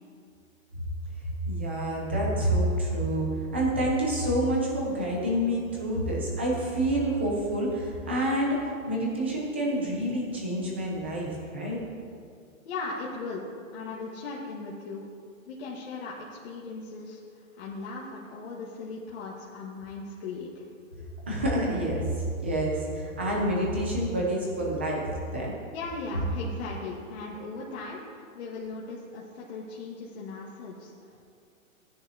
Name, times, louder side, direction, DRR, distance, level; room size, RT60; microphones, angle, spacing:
voice 1, 1.5-8.6 8.9-11.8 21.3-22.1 22.4-25.5, right 1 dB, 10° right, -3 dB, 0.4 m, -28 dB
voice 2, 12.6-13.4 13.7-15.1 15.5-20.7 25.7-31.2, left 3 dB, 50° left, -5 dB, 1.6 m, -38 dB
15.0 x 9.6 x 2.7 m, 2.3 s
hypercardioid pair, 155°, 41 cm